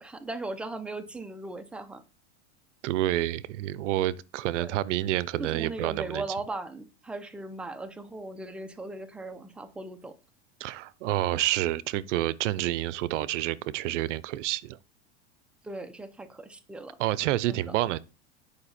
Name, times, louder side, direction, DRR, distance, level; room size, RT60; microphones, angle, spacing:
voice 1, 0.0-2.0 4.5-4.7 5.4-10.1 15.6-17.0 17.5-17.8, right 2 dB, 5° right, 0.7 m, -38 dB
voice 2, 2.8-6.2 10.6-14.8 17.0-18.0, right 15 dB, 80° right, 0.6 m, -28 dB
9.6 x 5.0 x 4.2 m
supercardioid pair, 135°, 36 cm